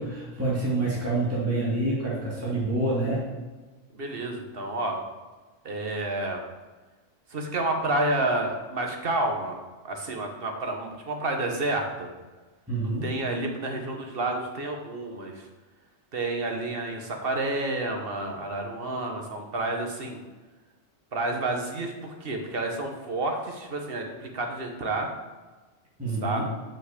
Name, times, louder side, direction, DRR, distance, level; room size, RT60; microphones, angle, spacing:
voice 1, 0.0-3.2 12.7-13.1 26.0-26.4, right 2 dB, 10° right, -7 dB, 2.1 m, -27 dB
voice 2, 3.9-5.0 5.6-6.4 7.3-9.6 9.8-12.1 13.0-15.5 16.1-20.2 21.1-25.1 26.2-26.4, right 2 dB, 50° right, 3 dB, 1.4 m, -30 dB
6.1 x 5.8 x 6.6 m, 1.3 s
omnidirectional pair, 1.3 m